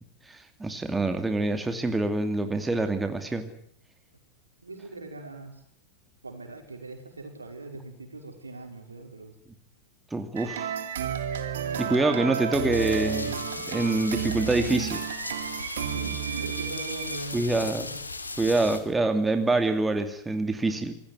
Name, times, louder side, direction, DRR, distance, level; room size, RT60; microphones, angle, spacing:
voice 1, 0.3-3.5 10.1-10.7 11.8-15.0 17.3-17.9 18.4-20.9, right 2 dB, 10° right, 7 dB, 2.7 m, -26 dB
voice 2, 4.6-5.6 6.2-9.4 15.8-18.0, right 2 dB, 80° right, 4 dB, 5.4 m, -40 dB
sound 1, 10.4-17.2, right 9 dB, 60° right, 2.7 m, -32 dB
sound 2, 12.7-18.8, left 3 dB, 80° left, 2.8 m, -37 dB
26.5 x 19.0 x 9.7 m, 0.65 s
figure-of-eight pair, 90°, 0 cm